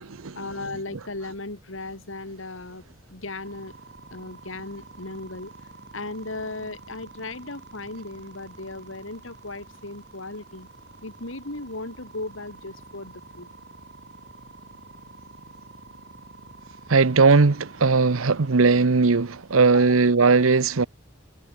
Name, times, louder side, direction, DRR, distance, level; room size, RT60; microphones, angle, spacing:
voice 1, 0.3-2.8 3.1-3.7 4.1-5.5 5.9-10.7 11.0-13.5 19.6-19.9, left 2 dB, 70° left, 3.2 m, -36 dB
sound 1, 3.4-18.5, right 3 dB, 60° right, 4.4 m, -48 dB
voice 2, 16.9-20.9, right 4 dB, 90° right, 0.8 m, -18 dB
head